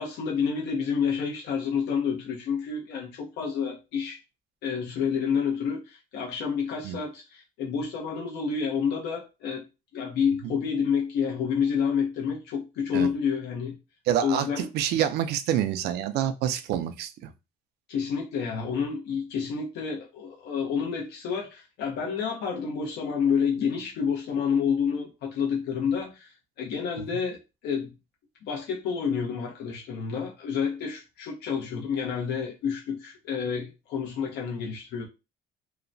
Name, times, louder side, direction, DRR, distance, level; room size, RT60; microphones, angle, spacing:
voice 1, 0.0-4.2 4.6-9.6 9.9-13.7 14.2-14.7 17.9-27.4 27.6-27.9 28.5-35.1, left 6 dB, 85° left, 0.9 m, -29 dB
voice 2, 14.1-17.3 27.0-27.1, right 10 dB, 75° right, 0.4 m, -27 dB
2.9 x 2.1 x 2.6 m
cardioid pair, 110°, 17 cm